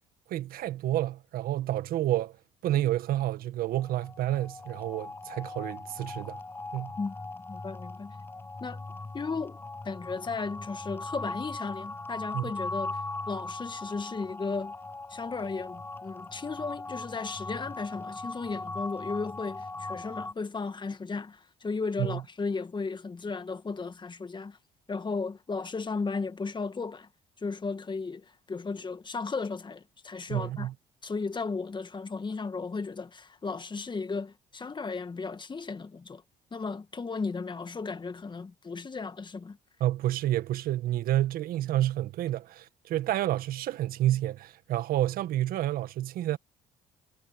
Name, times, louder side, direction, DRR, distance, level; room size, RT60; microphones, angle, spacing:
voice 1, 0.3-2.4 2.6-6.4 6.7-6.9 12.3-12.5 22.0-22.2 30.3-30.7 39.8-46.4, right 14 dB, 70° right, 1.8 m, -29 dB
sound 1, 3.7-20.3, left 2 dB, 15° left, 0.5 m, -39 dB
voice 2, 7.5-8.2 8.6-8.8 9.1-9.6 9.8-13.0 13.3-14.7 15.1-24.6 24.9-27.1 27.4-30.7 31.0-36.2 36.5-39.6, left 4 dB, 30° left, 2.0 m, -35 dB
supercardioid pair, 65°, 16 cm